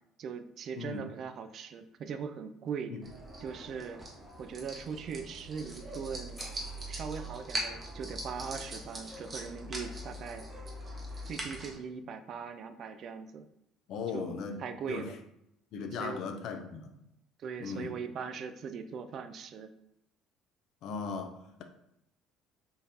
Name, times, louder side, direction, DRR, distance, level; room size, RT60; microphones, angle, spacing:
voice 1, 0.2-2.9 3.4-4.0 4.4-6.4 6.9-10.4 11.3-13.5 14.1-14.3 14.6-15.2 15.9-16.2 17.4-19.7, right 6 dB, 55° right, 0.3 m, -40 dB
voice 2, 0.8-1.1 2.9-3.0 13.9-14.6 14.9-15.1 15.7-16.9 17.6-18.0 20.8-21.3, left 5 dB, 65° left, 0.4 m, -37 dB
sound 1, 3.0-11.7, right 1 dB, 35° right, 0.9 m, -41 dB
sound 2, 6.4-10.5, left 1 dB, 25° left, 1.4 m, -58 dB
3.8 x 2.4 x 2.7 m
supercardioid pair, 85°, 0 cm